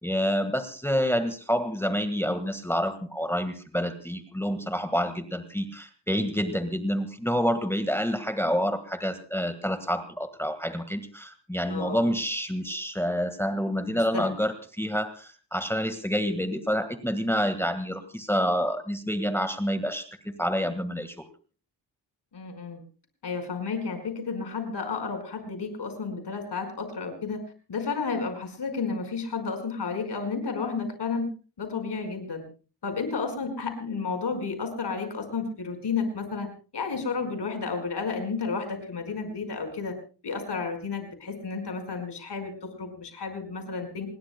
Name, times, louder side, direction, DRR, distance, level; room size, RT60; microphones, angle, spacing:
voice 1, 0.0-21.3, equal, 5° left, 9 dB, 1.7 m, -28 dB
voice 2, 11.6-12.1 13.9-14.3 22.3-22.8 23.2-27.4 27.7-31.3 31.6-32.4 32.8-36.5 36.7-40.0 40.2-44.1, left 4 dB, 75° left, 6 dB, 4.9 m, -32 dB
28.0 x 20.5 x 2.2 m, 0.36 s
wide cardioid pair, 100°, 41 cm